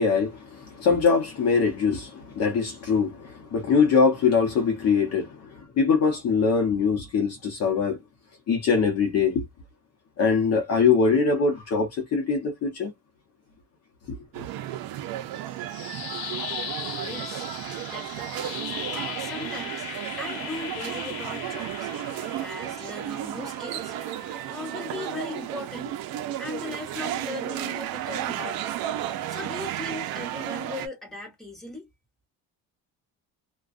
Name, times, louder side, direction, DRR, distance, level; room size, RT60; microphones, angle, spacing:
voice 1, 0.0-8.0 8.5-9.5 10.2-12.9 14.1-14.2, left 5 dB, 45° left, 0.7 m, -23 dB
sound 1, 14.3-30.9, right 12 dB, 70° right, 0.6 m, -33 dB
sound 2, 15.5-25.5, left 8 dB, 75° left, 0.9 m, -39 dB
voice 2, 17.0-17.5 17.9-18.5 18.9-19.9 20.2-21.9 22.4-23.9 24.5-25.9 26.4-28.7 29.3-31.9, left 2 dB, ahead, 1.2 m, -38 dB
2.4 x 2.3 x 2.4 m
cardioid pair, 160°, 37 cm